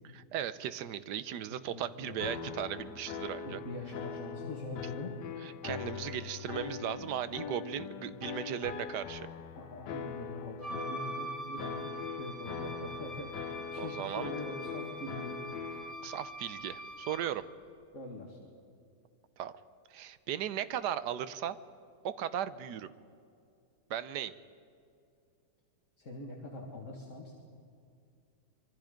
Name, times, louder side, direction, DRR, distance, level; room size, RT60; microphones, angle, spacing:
voice 1, 0.1-3.6 5.4-9.3 13.8-14.3 16.0-17.4 19.4-19.5 19.9-21.6 22.0-22.9 23.9-24.3, right 10 dB, 75° right, 14 dB, 1.4 m, -37 dB
voice 2, 1.7-2.2 3.5-5.2 9.5-15.4 17.9-18.4 26.0-27.3, left 2 dB, 45° left, -2 dB, 2.4 m, -43 dB
sound 1, 2.2-15.9, left 7 dB, 80° left, 1.4 m, -42 dB
Wind instrument woodwind instrument, 10.6-17.4, right 1 dB, 20° left, 2.7 m, -43 dB
25.5 x 23.5 x 5.2 m, 2.5 s
omnidirectional pair, 1.8 m